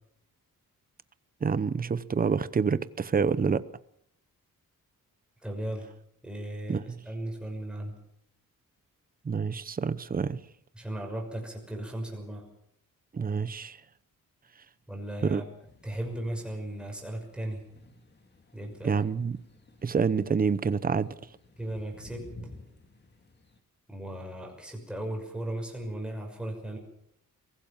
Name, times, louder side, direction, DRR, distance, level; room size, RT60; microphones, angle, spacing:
voice 1, 1.4-3.6 6.7-6.8 9.2-10.4 13.1-13.8 15.2-15.4 18.8-19.4 19.8-21.1, right 5 dB, 25° right, 0.8 m, -27 dB
voice 2, 5.4-5.9 6.2-7.9 10.7-12.5 14.9-15.4 15.8-17.6 18.5-18.9 21.6-22.3 23.9-26.8, right 1 dB, 5° right, 6.2 m, -36 dB
sound 1, 15.6-23.6, left 1 dB, 30° left, 2.4 m, -53 dB
23.0 x 17.0 x 7.2 m
wide cardioid pair, 160°, 34 cm